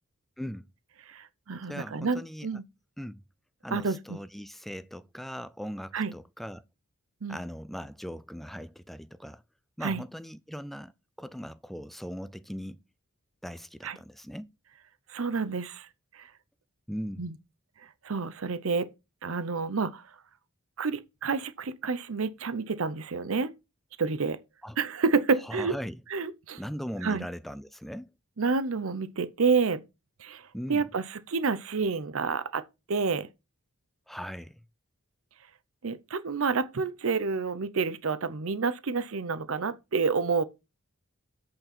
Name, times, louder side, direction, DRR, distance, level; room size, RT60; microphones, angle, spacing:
voice 1, 1.1-2.6 3.7-4.2 5.9-6.1 7.2-7.4 9.8-10.0 13.8-14.0 15.1-15.9 16.1-16.3 17.2-17.4 18.0-18.9 19.2-20.1 20.8-23.5 24.0-24.4 24.8-25.7 26.1-26.6 27.0-27.3 28.4-29.8 30.2-33.3 35.8-40.4, right 4 dB, 65° right, 0.7 m, -29 dB
voice 2, 1.7-2.5 3.0-3.2 3.6-6.6 7.3-9.4 9.8-10.9 11.2-12.8 13.4-14.5 16.9-17.3 24.6-24.8 25.4-26.0 26.6-28.1 30.5-30.8 34.1-34.6, equal, ahead, 0.4 m, -39 dB
8.1 x 6.5 x 4.3 m
head